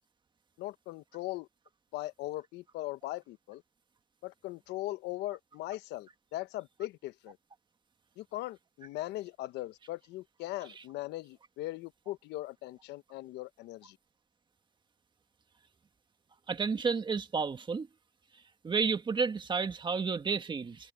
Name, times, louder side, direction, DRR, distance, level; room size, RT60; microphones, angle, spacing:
voice 1, 0.6-1.5 1.9-3.6 4.2-7.4 8.2-14.0, left 17 dB, 85° left, 1.0 m, -39 dB
voice 2, 16.5-17.9 18.6-20.9, right 5 dB, 25° right, 1.7 m, -31 dB
cardioid pair, 110°, 17 cm